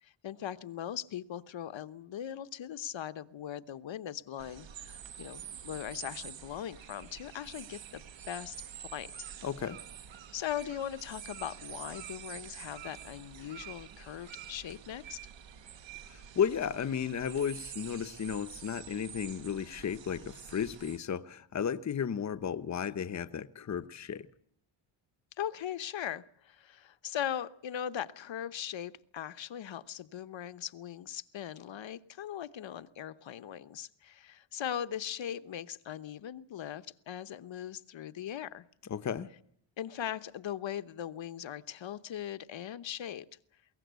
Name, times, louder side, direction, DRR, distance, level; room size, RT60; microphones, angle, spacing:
voice 1, 0.0-9.3 10.3-15.2 25.4-38.6 39.8-43.2, left 10 dB, 65° left, 1.0 m, -40 dB
sound 1, 4.4-21.0, right 9 dB, 60° right, 1.2 m, -47 dB
voice 2, 9.4-9.8 16.1-24.3 38.9-39.3, left 8 dB, 35° left, 0.8 m, -34 dB
22.0 x 18.5 x 8.1 m
wide cardioid pair, 170°, 50 cm